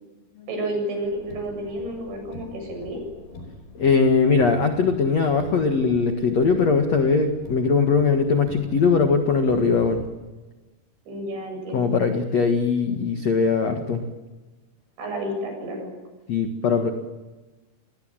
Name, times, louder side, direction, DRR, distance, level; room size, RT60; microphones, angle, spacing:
voice 1, 0.5-3.0 11.1-12.0 15.0-15.9, right 1 dB, 60° right, 3 dB, 9.8 m, -30 dB
Car, 1.0-10.1, left 2 dB, 50° left, 6.9 m, -43 dB
voice 2, 3.8-10.0 11.7-14.0 16.3-16.9, left 5 dB, 70° left, 5 dB, 1.5 m, -20 dB
29.5 x 20.0 x 9.1 m, 1.2 s
omnidirectional pair, 6.0 m